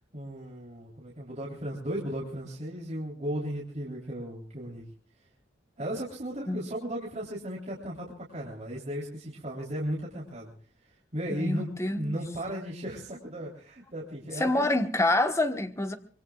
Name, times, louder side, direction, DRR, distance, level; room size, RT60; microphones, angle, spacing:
voice 1, 0.1-4.8 5.8-10.5 11.1-14.7, equal, 40° right, -4 dB, 3.6 m, -35 dB
voice 2, 11.3-12.2 14.4-15.9, left 2 dB, 15° left, 8 dB, 1.3 m, -27 dB
25.0 x 22.5 x 2.4 m, 0.43 s
head